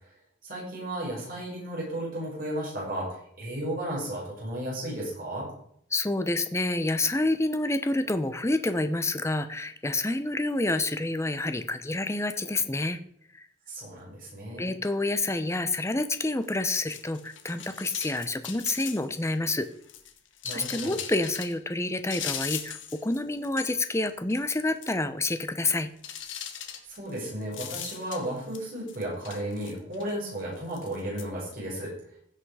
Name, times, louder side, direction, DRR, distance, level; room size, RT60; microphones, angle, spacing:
voice 1, 0.4-5.5 13.7-14.6 20.4-20.9 26.9-31.9, right 1 dB, 50° right, -5 dB, 5.4 m, -34 dB
voice 2, 5.9-13.0 13.3-13.4 14.6-19.7 20.4-25.9, left 2 dB, 15° left, 10 dB, 0.7 m, -28 dB
sound 1, 16.4-19.3 19.6-21.5 22.1-23.2 23.4-24.0 24.3-24.5 24.8-24.9 26.0-28.6 28.9-30.1 30.7-31.2, left 9 dB, 85° left, 1.4 m, -39 dB
16.0 x 5.9 x 4.9 m, 0.68 s
head